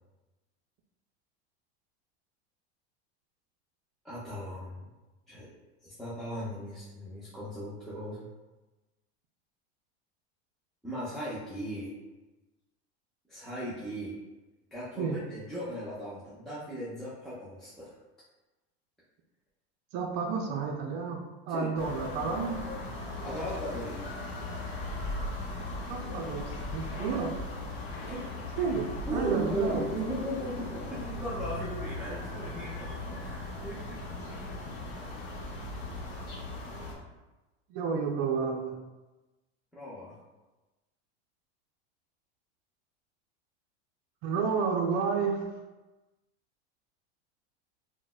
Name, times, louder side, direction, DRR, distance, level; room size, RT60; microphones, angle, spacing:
voice 1, 4.0-4.9 5.3-5.5 5.8-8.3 10.8-11.9 13.3-14.1 14.7-17.9 21.5-21.7 23.2-24.1 28.1-28.2 29.1-34.0 34.3-34.5 39.7-40.2, right 1 dB, ahead, -11 dB, 0.6 m, -37 dB
voice 2, 19.9-22.7 25.9-27.3 28.6-28.9 29.1-29.9 37.7-38.8 44.2-45.4, right 5 dB, 50° right, 0 dB, 0.4 m, -31 dB
sound 1, 21.8-36.9, left 2 dB, 60° left, 0.9 m, -38 dB
3.8 x 2.1 x 2.2 m, 1.1 s
supercardioid pair, 120°, 33 cm